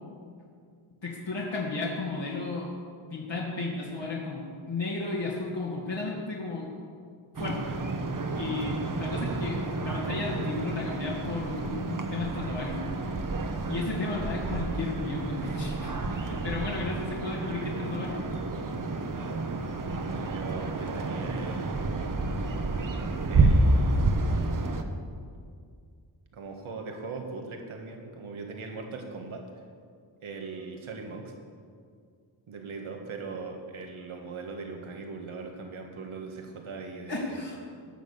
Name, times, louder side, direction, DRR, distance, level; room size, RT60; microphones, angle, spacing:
voice 1, 1.0-2.7 3.1-6.7 7.4-7.8 8.3-12.8 13.7-18.2 37.1-37.6, left 3 dB, 65° left, -5 dB, 2.3 m, -34 dB
sound 1, 7.3-24.8, right 2 dB, 40° right, 1.1 m, -29 dB
voice 2, 20.0-21.9 23.3-24.1 26.3-29.4 30.2-31.3 32.5-37.4, right 4 dB, 85° right, 2 dB, 1.7 m, -40 dB
18.5 x 6.4 x 7.0 m, 2.2 s
wide cardioid pair, 90°, 48 cm